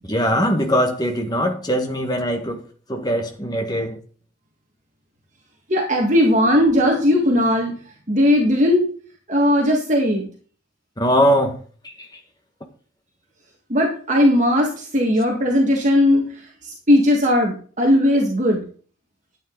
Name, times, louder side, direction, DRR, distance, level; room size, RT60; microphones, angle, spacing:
voice 1, 0.1-4.0 11.0-11.6 11.8-12.2, equal, 20° left, 1.6 m, -21 dB
voice 2, 5.7-7.7 8.1-8.9 9.3-10.3 13.7-18.6, left 1 dB, 35° right, 1.7 m, -18 dB
11.5 x 8.8 x 3.9 m
head